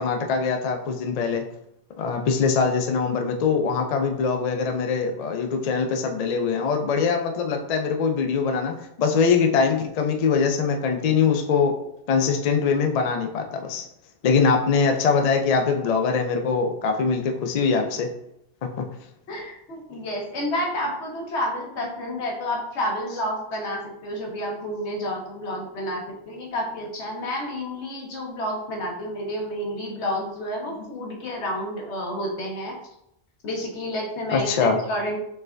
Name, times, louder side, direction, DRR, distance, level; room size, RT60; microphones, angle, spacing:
voice 1, 0.0-1.4 2.0-11.7 12.1-13.9 14.2-18.1 18.8-18.9 34.3-34.8, left 5 dB, 55° left, 4 dB, 0.4 m, -22 dB
voice 2, 19.3-32.7 33.4-35.2, equal, 85° left, 0 dB, 1.2 m, -30 dB
4.4 x 3.3 x 2.5 m, 0.79 s
omnidirectional pair, 1.1 m